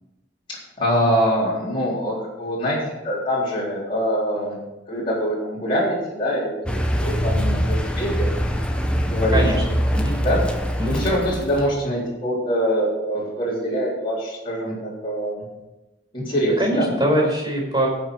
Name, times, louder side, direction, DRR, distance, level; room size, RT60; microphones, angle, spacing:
voice 1, 0.5-2.8 3.0-4.5 4.9-8.3 9.0-9.7 10.2-10.5 10.8-15.4 16.1-16.9, equal, 30° left, -8 dB, 3.9 m, -24 dB
Car, 6.7-11.8, equal, 5° left, 0.9 m, -23 dB
voice 2, 9.3-9.6 9.9-10.1 10.8-11.0 16.4-17.9, right 1 dB, 25° right, -1 dB, 5.0 m, -22 dB
17.0 x 6.0 x 5.0 m, 1.0 s
head